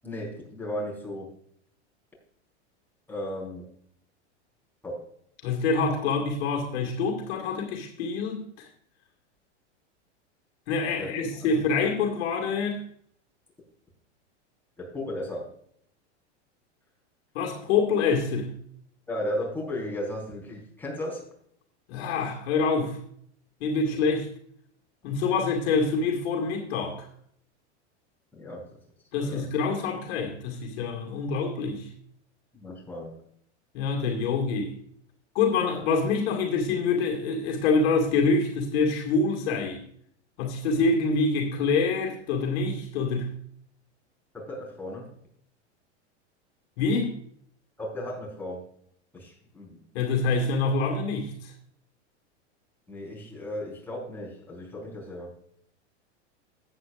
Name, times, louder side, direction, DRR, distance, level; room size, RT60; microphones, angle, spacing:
voice 1, 0.0-1.3 3.1-3.6 4.8-5.1 11.0-11.1 14.8-15.5 19.1-21.2 28.3-28.8 29.2-29.5 32.5-33.1 44.3-45.1 47.8-48.6 49.1-49.8 52.9-55.3, left 1 dB, 5° left, -3 dB, 4.6 m, -35 dB
voice 2, 5.4-8.7 10.7-12.8 17.3-18.5 21.9-23.0 23.6-24.3 25.0-27.1 29.1-31.9 33.7-34.7 35.3-39.8 40.4-43.3 46.8-47.1 49.9-51.5, left 4 dB, 60° left, 1 dB, 2.2 m, -26 dB
14.0 x 8.9 x 2.6 m, 0.66 s
hypercardioid pair, 120°, 35 cm